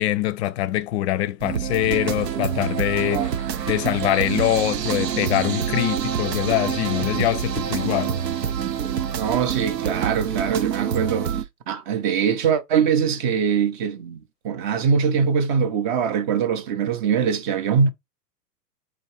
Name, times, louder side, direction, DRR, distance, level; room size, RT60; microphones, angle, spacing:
voice 1, 0.0-3.3 3.7-8.2, left 14 dB, 45° left, 0.5 m, -23 dB
sound 1, 1.4-11.4, right 8 dB, 90° right, 0.6 m, -26 dB
voice 2, 9.2-17.9, right 7 dB, 35° right, 0.5 m, -23 dB
4.3 x 2.8 x 2.9 m
hypercardioid pair, 105°, 48 cm